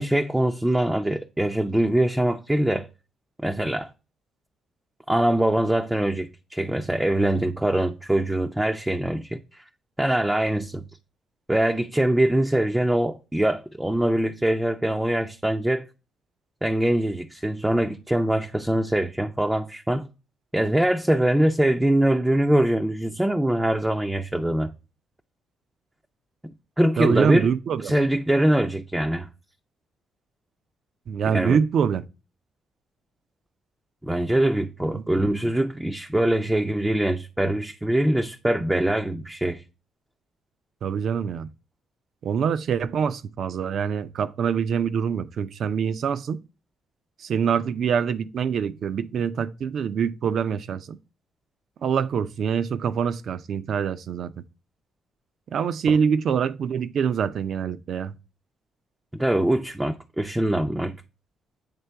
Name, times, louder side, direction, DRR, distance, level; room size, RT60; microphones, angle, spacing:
voice 1, 0.0-2.9 3.4-3.9 5.1-9.6 10.0-10.8 11.5-15.8 16.6-20.1 20.5-24.7 26.8-27.5 27.8-29.3 31.3-31.6 34.1-39.6 55.9-56.0 59.1-61.0, right 1 dB, 10° right, 0.5 m, -23 dB
voice 2, 27.0-27.9 31.1-32.0 40.8-41.5 42.2-46.4 47.2-51.0 51.8-54.3 55.5-58.1, right 7 dB, 60° right, 0.5 m, -25 dB
8.2 x 3.7 x 3.3 m
cardioid pair, 90°, 0 cm